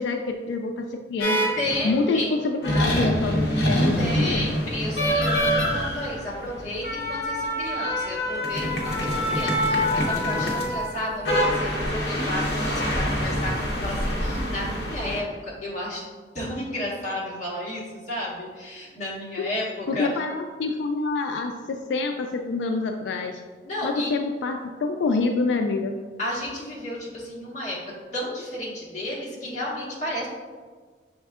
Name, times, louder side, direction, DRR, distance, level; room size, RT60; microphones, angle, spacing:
voice 1, 0.0-1.4 1.8-4.5 19.4-19.5 19.9-23.4 23.8-25.9, left 3 dB, 90° left, 5 dB, 0.3 m, -26 dB
sound 1, 1.2-2.0 2.6-15.2, equal, 65° left, 0.8 m, -25 dB
voice 2, 1.6-2.3 4.0-16.1 16.3-20.1 23.6-24.1 26.2-30.3, left 1 dB, 45° left, -6 dB, 1.4 m, -32 dB
6.3 x 3.4 x 2.4 m, 1.5 s
head